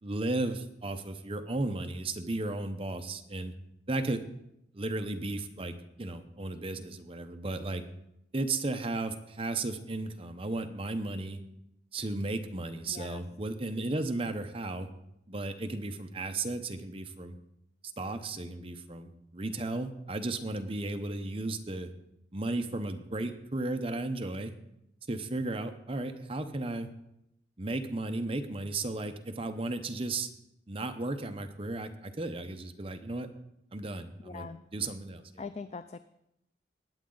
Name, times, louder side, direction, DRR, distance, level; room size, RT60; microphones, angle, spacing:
voice 1, 0.0-3.5 3.9-4.2 4.7-7.8 8.3-11.4 11.9-14.9 15.3-17.4 18.0-21.9 22.3-24.5 25.1-26.9 27.6-30.3 30.7-33.3 33.7-35.4, right 2 dB, 30° right, 7 dB, 0.8 m, -34 dB
voice 2, 12.9-13.2 34.2-34.6 35.4-36.0, left 4 dB, 35° left, 11 dB, 0.4 m, -42 dB
20.0 x 8.5 x 3.9 m, 0.82 s
head